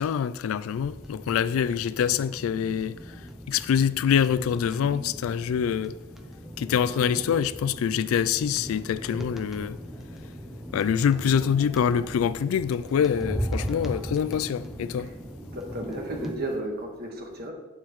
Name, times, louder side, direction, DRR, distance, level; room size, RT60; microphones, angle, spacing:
voice 1, 0.0-3.1 3.5-6.0 6.6-9.8 10.7-15.1, left 8 dB, 80° left, 0.3 m, -25 dB
sound 1, 0.7-16.3, equal, ahead, 0.5 m, -38 dB
voice 2, 15.5-17.5, right 1 dB, 50° right, 1.5 m, -33 dB
9.0 x 7.4 x 3.1 m
head